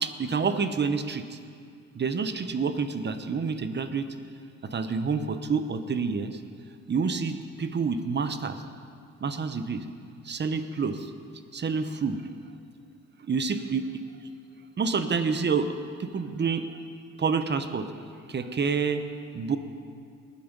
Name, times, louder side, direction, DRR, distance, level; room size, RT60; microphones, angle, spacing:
voice 1, 0.0-1.4 1.9-4.1 4.6-6.4 6.9-8.6 9.2-9.8 10.2-11.1 11.5-12.2 13.3-13.9 14.8-15.7 16.0-16.8 17.2-17.9 18.3-19.0 19.3-19.6, right 5 dB, 35° right, 10 dB, 0.9 m, -28 dB
19.0 x 9.3 x 5.3 m, 2.3 s
cardioid pair, 90°, 30 cm